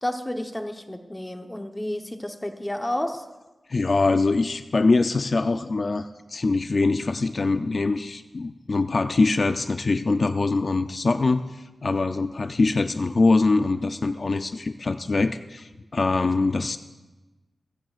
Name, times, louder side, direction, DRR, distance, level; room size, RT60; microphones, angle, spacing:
voice 1, 0.0-3.2, left 1 dB, 15° left, 5 dB, 0.9 m, -31 dB
voice 2, 3.7-16.8, left 3 dB, 50° left, 9 dB, 0.4 m, -23 dB
22.0 x 15.5 x 2.4 m, 1.1 s
wide cardioid pair, 125°, 0 cm